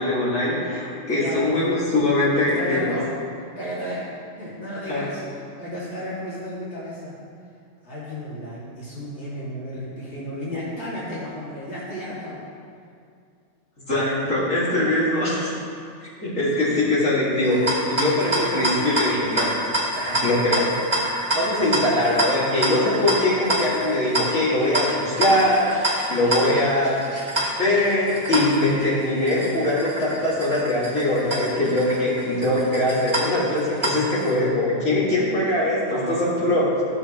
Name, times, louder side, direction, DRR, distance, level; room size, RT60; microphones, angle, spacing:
voice 1, 0.0-3.0 4.9-5.0 13.9-15.5 16.2-19.6 20.0-20.7 21.3-27.0 27.6-36.8, left 1 dB, 85° left, -9 dB, 2.7 m, -22 dB
voice 2, 1.1-1.6 2.6-3.1 3.6-7.1 7.8-12.4, equal, 60° left, -9 dB, 2.7 m, -33 dB
sound 1, 17.4-34.3, right 1 dB, 20° right, 1.6 m, -27 dB
14.5 x 6.9 x 3.0 m, 2.4 s
omnidirectional pair, 1.3 m